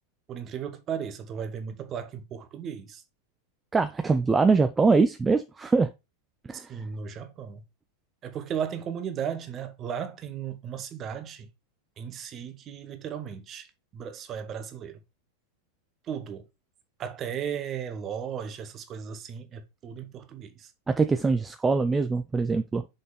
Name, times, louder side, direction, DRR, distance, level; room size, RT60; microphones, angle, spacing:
voice 1, 0.3-3.0 6.5-7.6 8.2-11.5 12.0-15.0 16.0-16.5 17.0-20.7, right 8 dB, 30° right, 1.2 m, -36 dB
voice 2, 3.7-5.9 6.5-6.8 20.9-22.9, right 4 dB, 15° right, 0.5 m, -23 dB
6.5 x 5.1 x 4.0 m
figure-of-eight pair, 90°, 0 cm